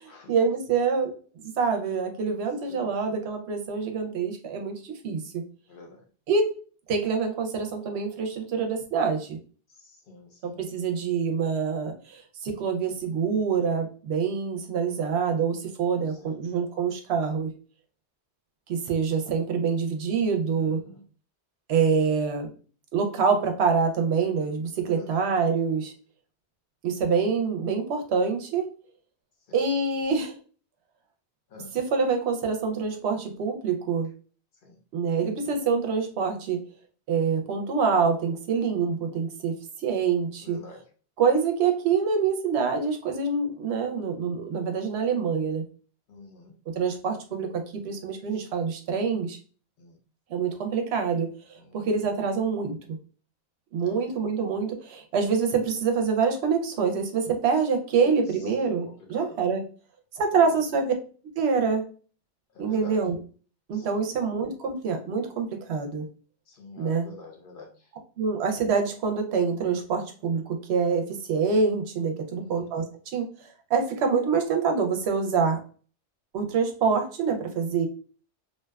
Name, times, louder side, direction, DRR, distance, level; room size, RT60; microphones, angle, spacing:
voice 1, 0.0-5.2 6.3-6.5 6.9-9.4 10.4-17.5 18.7-20.8 21.7-22.5 22.9-25.9 26.8-28.7 29.5-30.4 31.7-34.1 34.9-36.6 37.1-40.6 41.2-45.7 46.8-49.4 50.3-52.8 53.7-59.6 60.1-60.9 61.4-61.8 62.6-63.2 63.7-66.1 66.8-67.1 68.2-72.8 73.1-73.2 73.7-75.6 76.3-77.9, right 5 dB, 70° right, 4 dB, 0.8 m, -26 dB
voice 2, 5.7-6.0 9.8-10.6 16.1-16.4 20.5-21.0 24.9-25.2 31.5-31.7 34.6-34.8 40.4-40.9 46.1-46.5 49.8-50.0 51.6-51.9 53.8-54.2 58.0-58.1 58.9-59.5 60.6-60.7 62.5-63.0 63.7-64.1 66.5-67.9 72.3-72.7, left 4 dB, 60° left, 1 dB, 0.6 m, -47 dB
2.6 x 2.2 x 2.2 m, 0.39 s
omnidirectional pair, 1.2 m